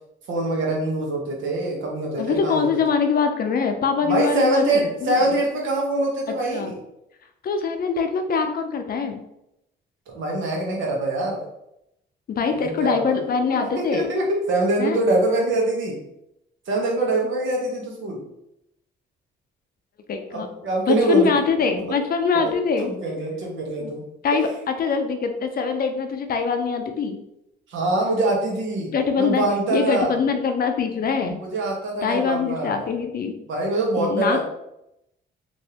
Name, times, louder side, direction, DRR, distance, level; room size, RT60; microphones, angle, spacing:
voice 1, 0.3-2.7 4.0-6.8 10.1-11.4 12.5-13.1 13.4-16.0 16.7-18.2 20.3-21.3 21.7-21.8 22.4-22.5 22.9-24.0 27.7-30.2 31.3-32.8 33.5-34.4, right 2 dB, 75° right, -1 dB, 1.0 m, -24 dB
voice 2, 2.2-4.6 5.0-5.4 6.5-6.7 7.4-9.2 12.3-14.1 14.8-15.0 20.1-20.5 20.9-22.9 23.8-23.9 24.2-27.2 28.9-29.5 29.7-31.4 32.0-33.4 34.0-34.4, left 5 dB, 50° left, 6 dB, 0.5 m, -23 dB
3.1 x 2.6 x 2.8 m, 0.82 s
cardioid pair, 90°, 20 cm